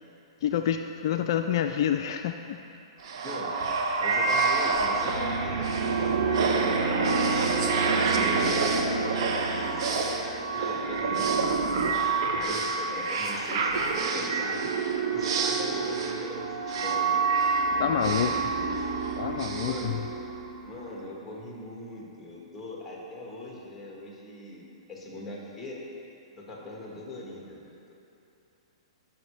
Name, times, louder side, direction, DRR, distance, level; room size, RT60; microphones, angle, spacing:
voice 1, 0.4-2.6 17.8-18.4 19.2-20.0, left 9 dB, 55° left, 6 dB, 0.4 m, -28 dB
sound 1, 3.0-20.7, right 4 dB, 60° right, 1.1 m, -27 dB
voice 2, 3.2-3.6 4.0-7.5 7.9-11.6 12.3-13.8 14.1-14.8 15.1-17.3 17.7-18.9 19.6-20.0 20.6-25.8 26.4-27.9, left 1 dB, 5° left, -4 dB, 1.9 m, -41 dB
14.5 x 6.0 x 3.3 m, 2.8 s
hypercardioid pair, 115°, 3 cm